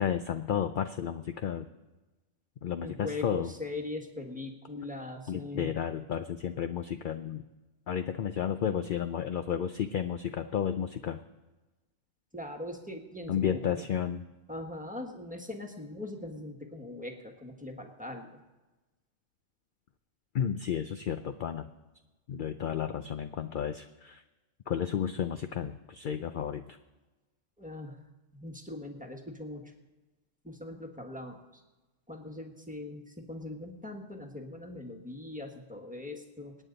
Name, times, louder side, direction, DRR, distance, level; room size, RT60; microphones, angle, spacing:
voice 1, 0.0-1.7 2.6-3.5 5.3-7.4 7.9-11.2 13.3-14.2 20.3-21.7 22.3-24.2 24.7-26.8, left 8 dB, 60° left, 9 dB, 0.5 m, -32 dB
voice 2, 2.8-5.7 12.3-13.8 14.5-18.4 27.6-28.0 28.3-29.7 30.4-31.6 32.1-36.5, left 2 dB, 5° right, 1 dB, 1.5 m, -41 dB
26.5 x 9.3 x 4.0 m, 1.1 s
omnidirectional pair, 1.4 m